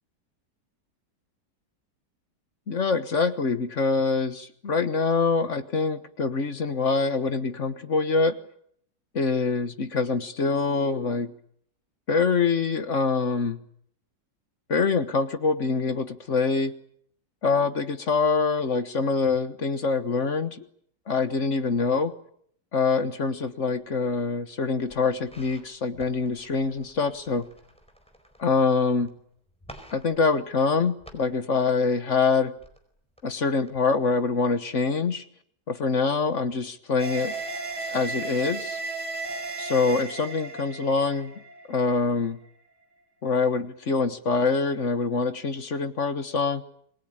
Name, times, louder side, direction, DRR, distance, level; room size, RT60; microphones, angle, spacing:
voice 1, 2.7-8.4 9.1-11.3 12.1-13.6 14.7-16.7 17.4-20.6 21.1-22.1 22.7-27.5 28.4-29.1 29.9-32.5 33.2-35.2 35.7-37.3 37.9-38.8 39.6-41.3 41.7-42.4 43.2-46.6, left 4 dB, 45° left, 10 dB, 1.5 m, -25 dB
sound 1, 23.8-24.5 24.8-29.1 29.4-31.4 31.9-33.2 33.6-33.7 34.2-34.3, equal, 5° left, 4.5 m, -51 dB
sound 2, 37.0-42.3, right 3 dB, 75° right, 4.3 m, -35 dB
27.5 x 21.5 x 8.8 m, 0.68 s
omnidirectional pair, 1.9 m